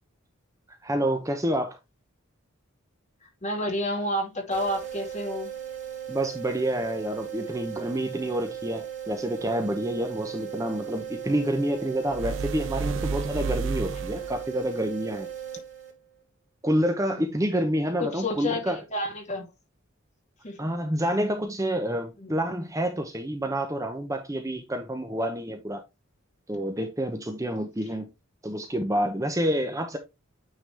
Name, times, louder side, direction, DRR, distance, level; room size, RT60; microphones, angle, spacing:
voice 1, 0.7-1.8 6.1-15.3 16.6-18.8 20.6-25.8 26.5-28.1 28.4-30.0, equal, 15° right, 0.8 m, -28 dB
voice 2, 3.4-5.5 17.0-17.3 18.0-19.5 20.4-20.6 22.2-22.4, left 1 dB, 35° left, 2.5 m, -30 dB
sound 1, 4.5-16.2, right 10 dB, 40° right, 2.5 m, -37 dB
sound 2, 12.1-14.5, right 4 dB, 65° right, 0.4 m, -31 dB
9.1 x 3.9 x 3.3 m
head